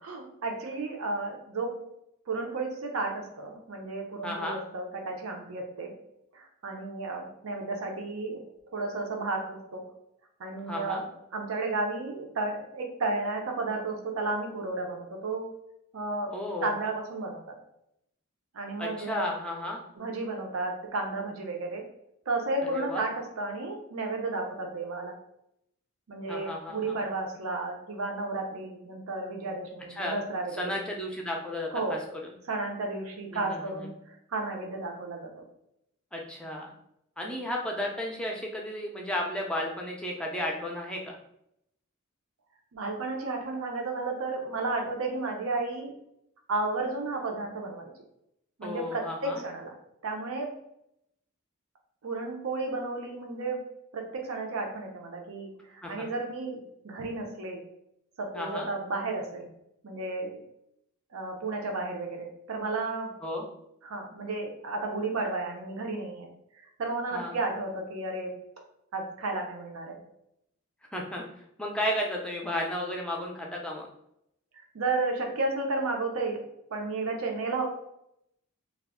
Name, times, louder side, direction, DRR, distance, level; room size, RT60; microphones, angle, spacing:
voice 1, 0.0-1.8 2.3-5.9 6.3-8.4 8.7-9.8 10.4-15.5 15.9-16.3 16.6-17.6 18.5-19.3 20.0-21.8 22.3-25.1 26.1-30.7 31.7-32.0 32.5-35.3 42.7-45.9 46.5-47.9 48.6-49.7 50.0-50.5 52.0-53.6 53.9-57.6 58.2-59.5 59.8-60.4 61.1-63.1 63.8-66.3 66.8-68.3 68.9-70.0 74.7-76.4 76.7-77.7, right 3 dB, 85° right, 2 dB, 0.6 m, -33 dB
voice 2, 4.2-4.6 10.7-11.0 16.3-16.7 18.8-19.8 22.6-23.0 26.3-27.0 30.0-30.2 30.5-32.0 33.3-33.9 36.1-36.7 37.2-41.2 48.6-49.4 55.8-56.1 58.3-58.7 63.2-63.5 67.1-67.4 70.9-73.9, left 1 dB, 5° left, -1 dB, 0.4 m, -33 dB
2.3 x 2.0 x 3.5 m, 0.78 s
head